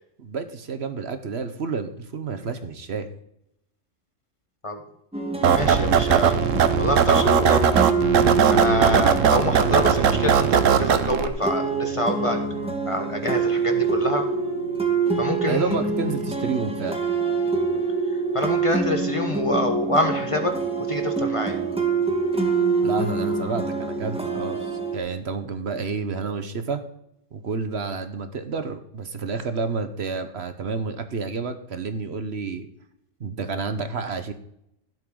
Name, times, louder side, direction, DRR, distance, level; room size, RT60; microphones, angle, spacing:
voice 1, 0.2-3.1 15.5-17.0 22.8-26.8 27.3-32.7 33.2-34.3, right 4 dB, 60° right, 9 dB, 1.2 m, -30 dB
sound 1, 5.1-25.0, right 4 dB, 5° right, 1.3 m, -26 dB
sound 2, 5.4-11.3, right 7 dB, 80° right, 1.2 m, -19 dB
voice 2, 5.5-6.4 6.8-7.7 8.5-12.4 12.9-14.2 15.2-15.8 18.3-21.6, left 1 dB, 25° left, 5 dB, 1.1 m, -26 dB
16.0 x 7.9 x 3.8 m, 0.77 s
omnidirectional pair, 1.3 m